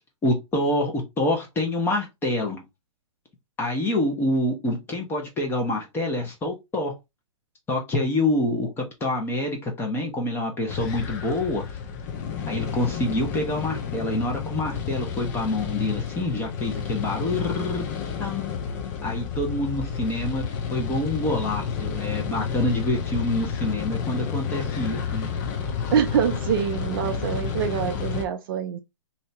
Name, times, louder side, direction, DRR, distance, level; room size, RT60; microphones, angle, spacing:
voice 1, 0.2-2.6 3.6-6.9 7.7-11.6 12.5-17.9 18.2-18.6 19.0-25.3, left 1 dB, 15° left, 1.0 m, -26 dB
sound 1, 10.7-28.2, left 7 dB, 35° left, 0.7 m, -30 dB
voice 2, 25.9-28.8, right 8 dB, 45° right, 0.5 m, -25 dB
2.8 x 2.7 x 3.3 m
hypercardioid pair, 140°, 17 cm